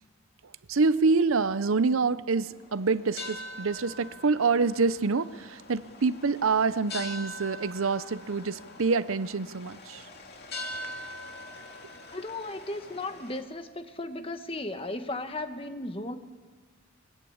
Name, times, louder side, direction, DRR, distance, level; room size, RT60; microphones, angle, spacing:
voice 1, 0.7-10.0, right 4 dB, 75° right, 0.7 m, -26 dB
sound 1, 2.5-13.4, left 1 dB, 50° left, 2.6 m, -43 dB
voice 2, 12.1-16.2, left 2 dB, 25° left, 1.3 m, -35 dB
23.0 x 20.0 x 8.7 m
head